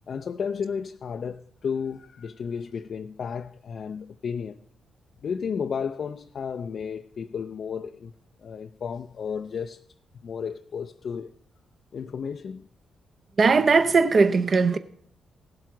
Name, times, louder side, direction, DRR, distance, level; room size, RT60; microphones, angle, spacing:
voice 1, 0.1-4.6 5.2-8.1 8.4-9.8 10.2-11.3 11.9-12.7, left 6 dB, 60° left, 0.4 m, -33 dB
voice 2, 13.4-14.8, right 4 dB, 45° right, 0.6 m, -19 dB
16.5 x 7.8 x 5.9 m
cardioid pair, 95°, 0 cm